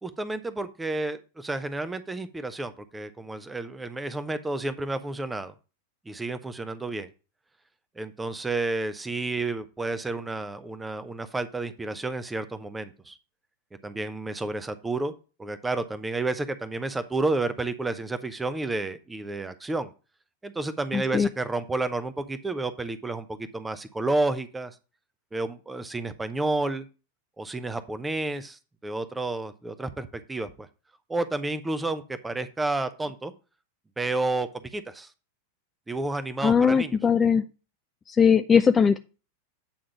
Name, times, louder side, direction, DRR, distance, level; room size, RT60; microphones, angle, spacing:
voice 1, 0.0-5.5 6.1-7.1 8.0-13.2 13.8-15.1 15.4-19.9 20.4-24.7 25.3-26.9 27.4-30.7 31.1-33.3 34.0-35.1 35.9-37.0, right 2 dB, 10° right, 11 dB, 0.8 m, -30 dB
voice 2, 20.9-21.3 36.4-37.4 38.1-39.0, left 6 dB, 20° left, 9 dB, 0.4 m, -20 dB
8.7 x 3.7 x 5.7 m, 0.32 s
figure-of-eight pair, 90°, 0 cm